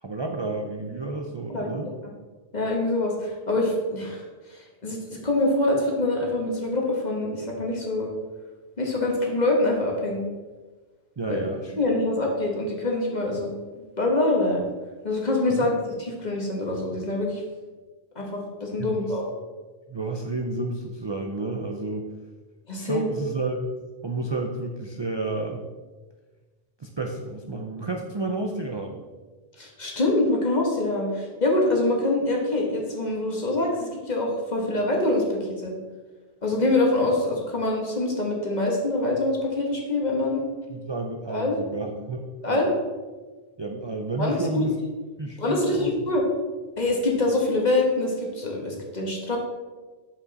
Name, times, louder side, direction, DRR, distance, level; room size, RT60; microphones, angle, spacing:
voice 1, 0.0-1.9 11.2-11.8 15.5-15.7 18.8-19.2 19.9-22.1 22.8-23.7 24.0-25.6 26.8-29.0 40.7-42.2 42.5-42.7 43.6-44.8 45.2-45.9, right 2 dB, 35° right, 2 dB, 0.4 m, -31 dB
voice 2, 1.5-1.8 2.5-4.2 4.5-8.1 8.8-10.2 11.3-11.4 11.8-13.5 14.0-14.6 15.0-17.4 18.1-19.3 22.7-23.1 29.6-35.7 36.4-40.5 41.3-41.5 42.4-42.7 44.2-44.6 45.4-46.2 46.8-49.4, left 2 dB, 45° left, -1 dB, 1.4 m, -25 dB
7.3 x 5.2 x 4.1 m, 1.3 s
omnidirectional pair, 1.1 m